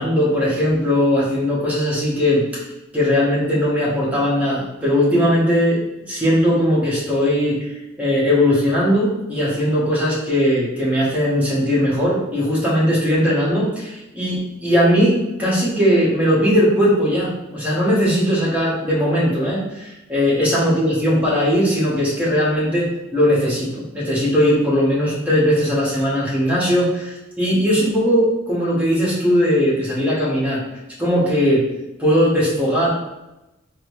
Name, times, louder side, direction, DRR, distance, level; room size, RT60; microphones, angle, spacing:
voice 1, 0.0-2.6 2.9-5.8 6.1-7.6 8.0-30.6 31.0-31.6 32.0-32.9, equal, 5° right, -7 dB, 1.0 m, -19 dB
4.0 x 2.0 x 3.0 m, 0.97 s
head